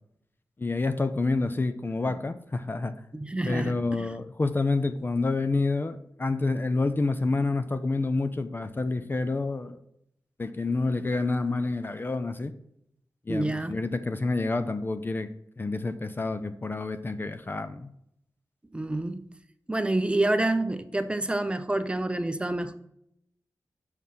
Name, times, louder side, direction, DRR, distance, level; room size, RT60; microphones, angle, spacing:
voice 1, 0.6-2.9 3.5-9.8 10.4-12.5 13.3-15.3 15.6-17.9, left 3 dB, 30° left, 0.5 m, -28 dB
voice 2, 3.1-4.2 13.3-13.8 18.7-19.2 19.7-22.7, right 2 dB, 15° right, 0.6 m, -28 dB
6.3 x 5.4 x 5.7 m
wide cardioid pair, 105°, 7 cm